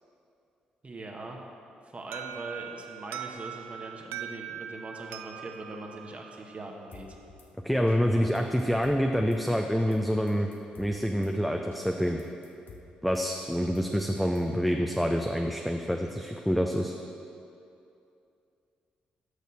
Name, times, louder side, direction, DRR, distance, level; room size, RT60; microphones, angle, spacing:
voice 1, 0.8-1.4 1.8-7.1, right 2 dB, 35° right, 1 dB, 1.1 m, -41 dB
Alarm, 2.1-6.9, right 10 dB, 70° right, 0.3 m, -41 dB
Drum kit / Snare drum, 6.9-7.5 7.9-8.0 8.2-9.4 9.8-10.0 10.3-11.3 11.7-11.8 12.1-13.3 13.6-14.6, left 6 dB, 50° left, 0.9 m, -52 dB
voice 2, 7.6-10.5 10.8-12.2 13.0-16.9, equal, ahead, 2 dB, 0.5 m, -27 dB
6.6 x 6.6 x 6.1 m, 2.6 s
figure-of-eight pair, 40°, 4 cm